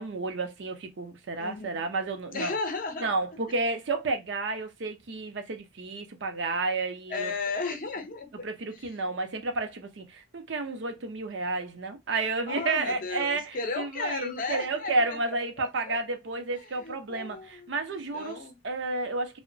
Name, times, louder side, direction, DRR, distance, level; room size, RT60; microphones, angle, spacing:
voice 1, 0.0-2.5 3.0-7.3 8.4-19.4, right 3 dB, 70° right, 0.6 m, -31 dB
voice 2, 1.4-1.8 2.3-3.1 7.1-8.5 12.5-15.2 15.6-16.0 16.8-18.6, left 3 dB, 45° left, 0.5 m, -35 dB
2.8 x 2.1 x 2.5 m
head